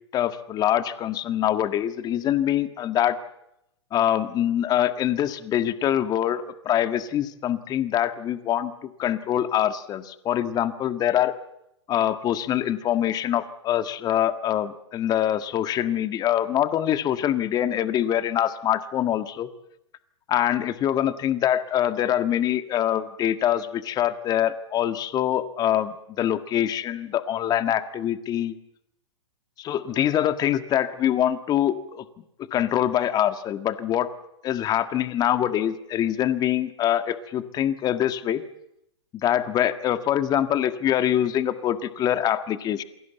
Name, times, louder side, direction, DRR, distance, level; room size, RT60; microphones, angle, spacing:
voice 1, 0.1-3.2 3.9-11.3 11.9-19.5 20.3-28.5 29.6-32.0 32.5-34.1 34.4-38.4 39.2-42.8, left 11 dB, 25° left, 9 dB, 1.7 m, -24 dB
28.5 x 22.5 x 8.1 m, 0.82 s
hypercardioid pair, 115°, 15 cm